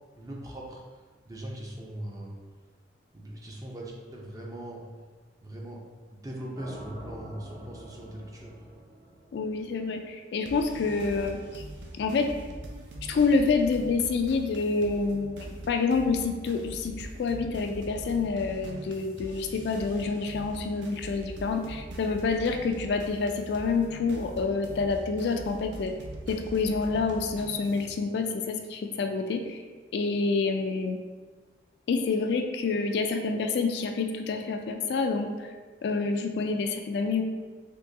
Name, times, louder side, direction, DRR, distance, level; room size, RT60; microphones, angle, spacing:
voice 1, 0.2-1.0 1.3-2.4 3.1-4.8 5.4-5.8 6.1-8.5, right 1 dB, 20° right, -2 dB, 0.5 m, -40 dB
sound 1, 6.5-10.6, right 1 dB, 60° right, 1.0 m, -47 dB
voice 2, 9.3-11.6 11.9-12.3 13.1-25.9 26.3-29.6 29.9-31.0 31.9-35.5 35.8-37.2, left 4 dB, 65° left, 5 dB, 0.3 m, -28 dB
sound 2, 10.5-27.9, right 1 dB, 90° right, 0.5 m, -42 dB
3.6 x 3.0 x 2.6 m, 1.4 s
head